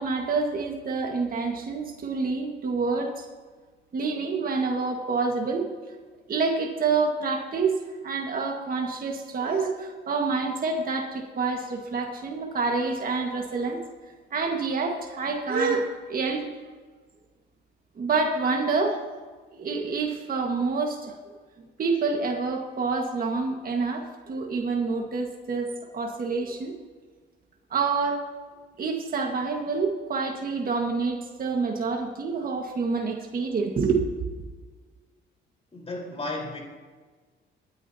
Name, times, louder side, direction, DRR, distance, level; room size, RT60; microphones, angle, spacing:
voice 1, 0.0-3.2 3.9-5.7 6.3-7.8 8.0-13.8 14.3-16.5 18.0-19.0 19.5-21.1 21.8-26.8 27.7-28.2 28.8-34.0, right 4 dB, 45° right, 1 dB, 1.7 m, -27 dB
voice 2, 35.7-36.6, left 2 dB, 30° left, 0 dB, 4.4 m, -33 dB
22.0 x 9.9 x 2.9 m, 1.4 s
cardioid pair, 90°, 20 cm